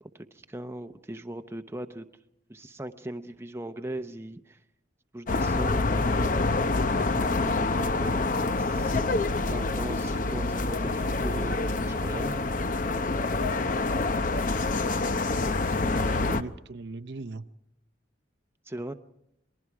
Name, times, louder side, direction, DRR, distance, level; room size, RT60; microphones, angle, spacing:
voice 1, 0.0-2.1 2.5-4.6 5.1-6.3 7.0-8.2 8.6-9.2 9.5-12.4 18.7-18.9, right 1 dB, 15° right, 7 dB, 0.7 m, -39 dB
sound 1, 5.3-16.4, left 3 dB, 45° left, 0.7 m, -26 dB
voice 2, 15.3-17.5, right 3 dB, 65° right, 11 dB, 0.7 m, -40 dB
27.5 x 21.0 x 4.8 m, 0.80 s
head